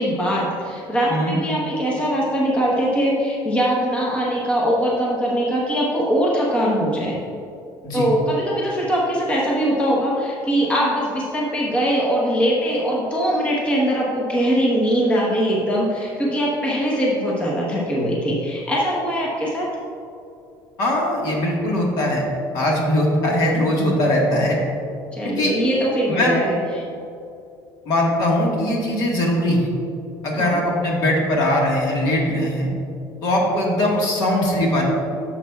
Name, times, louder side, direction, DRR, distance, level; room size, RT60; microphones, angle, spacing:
voice 1, 0.0-7.2 7.9-19.7 25.1-26.8 30.4-30.6, equal, 15° left, -4 dB, 1.1 m, -21 dB
voice 2, 20.8-22.2 22.5-24.6 25.2-25.5 26.1-26.4 27.8-29.7 30.2-32.7 33.2-34.8, left 1 dB, 55° left, -2 dB, 1.6 m, -20 dB
11.0 x 7.2 x 2.4 m, 2.6 s
cardioid pair, 160°, 8 cm